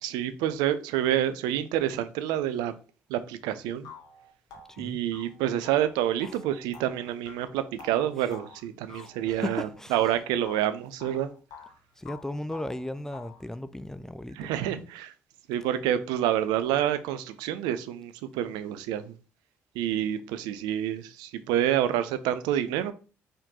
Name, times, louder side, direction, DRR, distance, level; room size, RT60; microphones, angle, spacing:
voice 1, 0.0-2.7 3.1-3.9 4.8-11.3 14.3-15.1 15.5-19.1 19.8-22.9, right 11 dB, 70° right, 0.4 m, -28 dB
sound 1, 3.3-3.4 3.8-10.2 10.5-11.8 12.1-13.5, left 5 dB, 65° left, 0.9 m, -48 dB
voice 2, 8.9-10.0 12.0-14.7, left 1 dB, 5° left, 0.4 m, -36 dB
4.3 x 3.7 x 2.8 m
hypercardioid pair, 50°, 7 cm